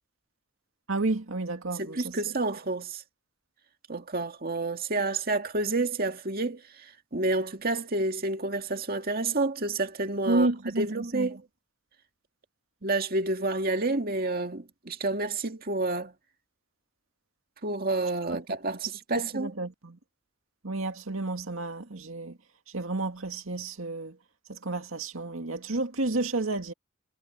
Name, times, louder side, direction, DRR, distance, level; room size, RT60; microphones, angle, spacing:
voice 1, 0.9-2.2 10.3-11.3 19.1-20.0 20.6-22.4 22.7-24.2 24.5-26.7, right 2 dB, 80° right, 2.1 m, -31 dB
voice 2, 1.8-3.0 3.9-10.5 10.8-11.4 12.8-16.1 17.6-19.5, right 2 dB, 45° right, 2.1 m, -29 dB
head